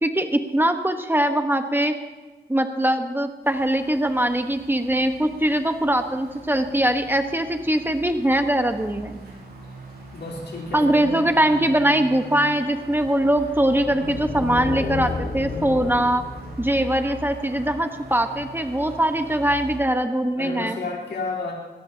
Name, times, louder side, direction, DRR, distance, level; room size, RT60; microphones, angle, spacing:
voice 1, 0.0-1.9 2.5-9.2 10.7-16.2 16.6-20.8, right 1 dB, 10° right, 6 dB, 1.2 m, -22 dB
sound 1, 3.4-19.8, right 1 dB, 70° right, 6.7 m, -41 dB
voice 2, 10.1-11.3 20.4-21.5, left 3 dB, 75° left, -5 dB, 3.7 m, -32 dB
sound 2, 13.4-17.8, left 4 dB, 35° left, 1.3 m, -32 dB
22.0 x 18.0 x 2.8 m, 1.2 s
cardioid pair, 70°, 18 cm